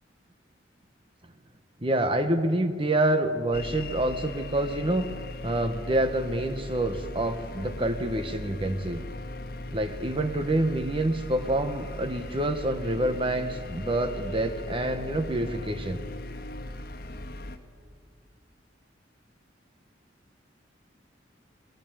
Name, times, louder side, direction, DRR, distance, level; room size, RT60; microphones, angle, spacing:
voice 1, 1.8-5.1 5.4-9.0 9.7-16.0, right 1 dB, 30° right, 8 dB, 1.1 m, -27 dB
sound 1, 3.5-17.6, left 1 dB, 55° left, 1.8 m, -39 dB
26.5 x 19.0 x 9.0 m, 2.1 s
head